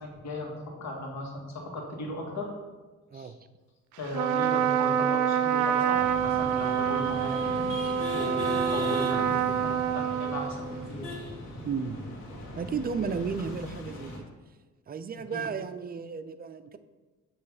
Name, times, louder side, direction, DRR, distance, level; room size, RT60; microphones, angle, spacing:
voice 1, 0.0-2.5 3.1-3.3 4.0-7.5 8.1-11.1 15.3-15.5, left 1 dB, 65° left, 0 dB, 1.8 m, -37 dB
Trumpet, 4.1-10.9, right 8 dB, 80° right, 0.5 m, -27 dB
sound 1, 5.9-14.2, left 1 dB, 80° left, 1.8 m, -39 dB
voice 2, 11.6-12.0 12.6-14.3 14.9-16.8, right 5 dB, 30° right, 10 dB, 0.5 m, -33 dB
7.9 x 3.2 x 5.9 m, 1.3 s
cardioid pair, 90°, 30 cm